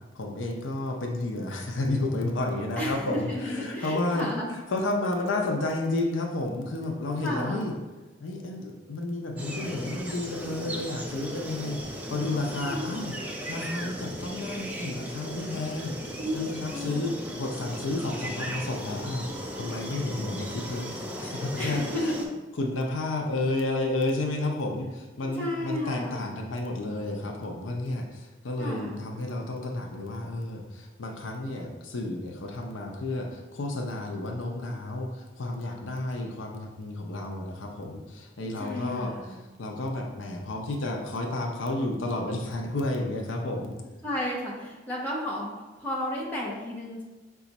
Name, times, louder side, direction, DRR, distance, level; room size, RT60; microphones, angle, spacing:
voice 1, 0.1-4.3 4.7-7.7 8.2-11.8 12.1-13.1 13.5-19.3 19.5-22.1 22.6-43.7, left 2 dB, 85° left, 1 dB, 0.6 m, -31 dB
voice 2, 2.8-4.5 7.2-7.7 12.6-13.0 16.2-16.4 16.7-17.1 21.6-22.3 25.3-26.3 28.6-29.0 38.4-39.3 44.0-47.0, left 1 dB, 10° left, -5 dB, 0.8 m, -33 dB
sound 1, 9.4-22.3, equal, 10° right, 0.3 m, -37 dB
4.9 x 2.4 x 4.0 m, 1.1 s
head